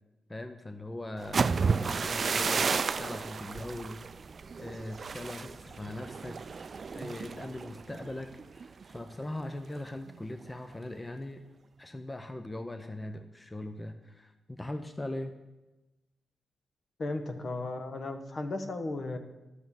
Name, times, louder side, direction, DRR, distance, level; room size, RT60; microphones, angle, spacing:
voice 1, 0.3-4.0 4.6-11.4 11.8-15.4, left 1 dB, 20° left, 7 dB, 0.8 m, -40 dB
sound 1, 1.2-9.0 9.4-9.7 10.1-10.5, right 5 dB, 50° right, 0.4 m, -32 dB
voice 2, 17.0-19.2, left 2 dB, 55° left, 6 dB, 1.3 m, -35 dB
11.0 x 6.6 x 7.2 m, 1.1 s
cardioid pair, 65°, 0 cm